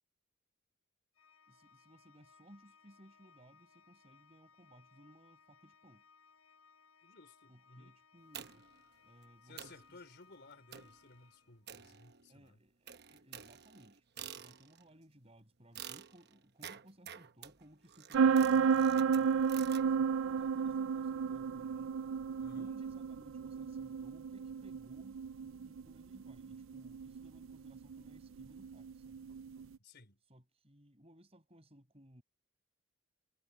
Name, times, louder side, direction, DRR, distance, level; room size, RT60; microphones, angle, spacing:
Organ, 1.1-12.0, left 5 dB, 90° left, 7.5 m, -66 dB
voice 1, 1.5-6.0 7.5-8.7 9.0-10.0 12.3-22.0 22.5-29.2 30.3-32.2, equal, 30° right, 5.9 m, -61 dB
voice 2, 7.0-8.0 9.4-12.6 22.4-22.8 23.4-23.5 29.8-30.2, left 3 dB, 50° left, 3.7 m, -58 dB
sound 1, 8.3-8.8 9.2-9.3 9.6-9.9 10.7-11.0 11.7-12.4 12.9-14.9 15.8-19.9, right 9 dB, 50° right, 1.0 m, -50 dB
sound 2, 18.1-29.6, right 6 dB, 70° right, 0.4 m, -33 dB
head